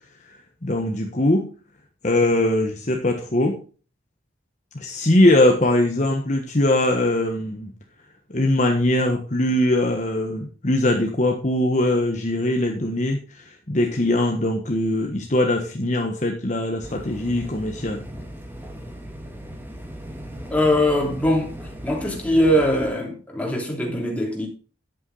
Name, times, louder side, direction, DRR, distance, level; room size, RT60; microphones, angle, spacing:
voice 1, 0.6-1.5 2.0-3.6 4.7-7.7 8.3-13.2 13.7-18.0, left 1 dB, 40° left, 1.3 m, -21 dB
sound 1, 16.8-22.9, equal, 10° right, 1.6 m, -38 dB
voice 2, 20.5-21.5 21.8-24.5, left 1 dB, 5° left, 3.1 m, -21 dB
10.5 x 8.6 x 4.0 m
head